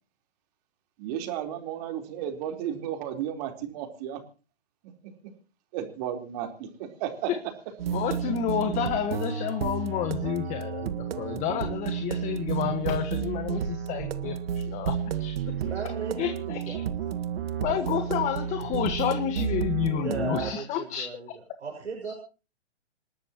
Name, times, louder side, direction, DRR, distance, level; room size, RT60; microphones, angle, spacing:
voice 1, 1.0-4.2 5.7-7.3, right 10 dB, 35° right, 4 dB, 4.1 m, -33 dB
sound 1, 7.8-20.5, right 8 dB, 55° right, 1.8 m, -31 dB
voice 2, 7.9-15.3 16.2-16.8 17.6-21.1 22.0-22.1, left 9 dB, 20° left, 7 dB, 1.6 m, -30 dB
voice 3, 15.6-16.8 17.6-18.0 20.0-21.3 21.6-22.1, right 4 dB, 90° right, 2 dB, 6.6 m, -36 dB
28.0 x 12.5 x 3.0 m, 0.34 s
hypercardioid pair, 145°, 34 cm